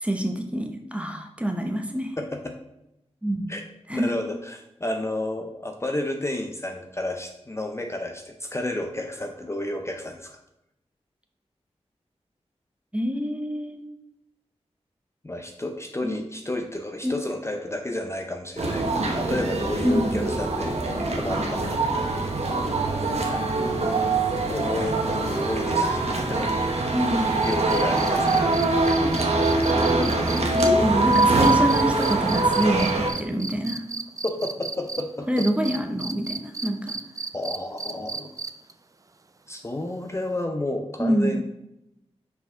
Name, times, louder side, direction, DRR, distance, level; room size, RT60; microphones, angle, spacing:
voice 1, 0.0-2.1 3.2-3.5 3.9-4.1 12.9-13.8 16.0-16.1 17.0-17.1 19.8-20.2 26.9-27.4 30.7-33.8 35.3-37.0 41.0-41.4, equal, 10° right, 4 dB, 0.8 m, -26 dB
voice 2, 2.2-2.6 3.5-3.6 3.9-10.4 15.2-22.4 23.3-23.7 24.5-26.5 27.4-28.7 34.2-35.3 37.3-38.3 39.5-41.4, left 1 dB, 25° left, 4 dB, 0.6 m, -31 dB
sound 1, 18.6-33.1, right 2 dB, 65° right, 1.1 m, -23 dB
sound 2, 27.4-35.0 35.4-38.7 40.4-40.5, right 3 dB, 30° right, 0.4 m, -34 dB
5.8 x 4.8 x 3.7 m, 0.87 s
wide cardioid pair, 85°, 11 cm